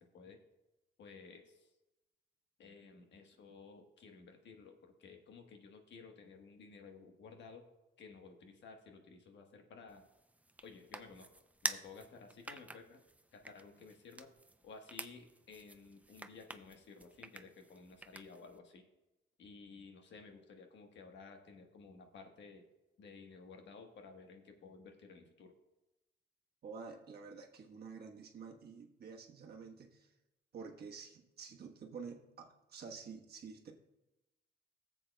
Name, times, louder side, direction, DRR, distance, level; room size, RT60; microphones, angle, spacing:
voice 1, 1.0-1.4 2.6-4.7 5.0-7.6 8.0-10.0 10.6-11.3 11.6-13.0 13.3-14.3 14.6-18.8 19.4-22.6 23.0-25.5, left 4 dB, 65° left, 4 dB, 1.3 m, -54 dB
sound 1, 9.9-18.6, right 2 dB, 5° right, 0.4 m, -48 dB
voice 2, 26.6-30.1 30.5-33.7, right 5 dB, 55° right, 2 dB, 1.2 m, -49 dB
15.0 x 7.7 x 2.2 m, 0.97 s
cardioid pair, 90°, 20 cm